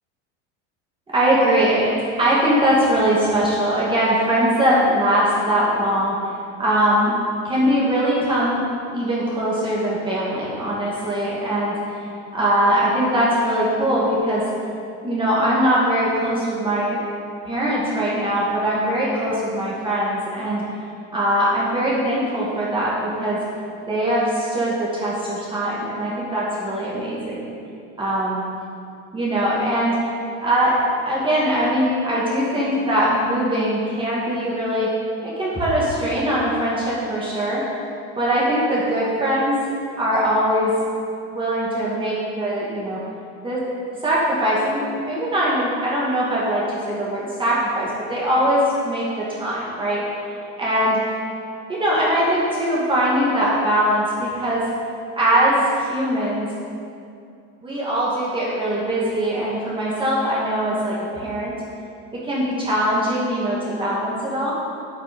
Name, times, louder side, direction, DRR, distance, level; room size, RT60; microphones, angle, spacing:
voice 1, 1.1-6.2 6.6-7.1 7.4-8.6 8.9-12.1 12.3-14.4 15.0-17.0 17.5-20.6 21.1-23.4 23.9-27.4 28.0-28.4 29.1-30.0 30.4-30.8 31.1-34.9 35.2-37.6 38.2-39.6 40.0-40.7 41.3-43.0 43.4-43.6 44.0-50.0 50.6-51.0 51.7-54.6 55.2-56.5 57.6-61.5 62.1-64.5, equal, 15° right, -7 dB, 2.3 m, -21 dB
9.6 x 8.9 x 5.5 m, 2.4 s
supercardioid pair, 135°, 35 cm